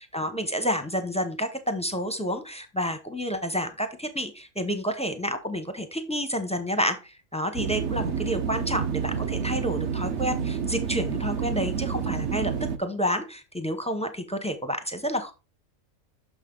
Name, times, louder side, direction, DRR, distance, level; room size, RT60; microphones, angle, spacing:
voice 1, 0.0-12.5 12.8-15.3, equal, 10° left, 8 dB, 0.5 m, -29 dB
sound 1, 7.6-12.8, right 6 dB, 60° right, 0.9 m, -29 dB
6.3 x 5.7 x 3.7 m, 0.29 s
omnidirectional pair, 1.5 m